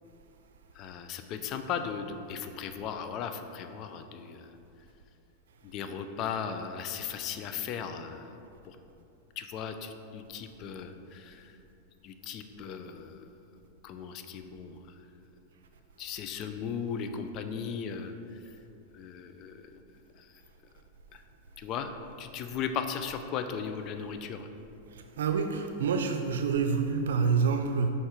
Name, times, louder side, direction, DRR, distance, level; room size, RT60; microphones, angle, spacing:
voice 1, 0.8-4.4 5.6-8.3 8.6-8.8 9.4-11.4 12.0-13.2 13.8-14.8 16.0-18.1 18.9-19.6 21.6-24.5, left 7 dB, 45° left, 8 dB, 0.5 m, -37 dB
voice 2, 25.2-27.9, right 5 dB, 80° right, 6 dB, 0.6 m, -27 dB
5.5 x 4.5 x 4.9 m, 2.8 s
hypercardioid pair, 110°, 0 cm